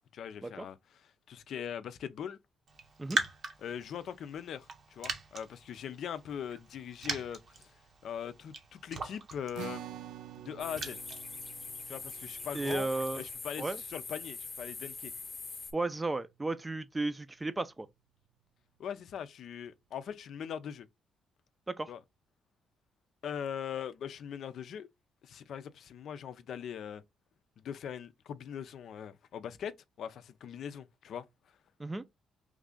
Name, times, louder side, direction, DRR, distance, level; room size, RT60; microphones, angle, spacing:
voice 1, 0.1-2.4 3.6-7.7 8.0-9.8 10.4-11.0 11.9-12.9 13.2-15.1 18.8-20.9 21.9-22.0 23.2-24.9 25.2-27.0 27.6-31.2, left 8 dB, 65° left, 0.4 m, -41 dB
Raindrop, 2.7-13.3, right 3 dB, 55° right, 0.9 m, -42 dB
sound 1, 9.5-16.2, right 10 dB, 85° right, 0.3 m, -49 dB
sound 2, 10.6-15.7, left 4 dB, 35° left, 0.9 m, -43 dB
voice 2, 12.5-13.2 13.6-13.8 15.7-17.9 21.7-21.9 31.8-32.1, right 2 dB, 20° right, 0.5 m, -34 dB
3.2 x 2.5 x 3.6 m
cardioid pair, 90°, 0 cm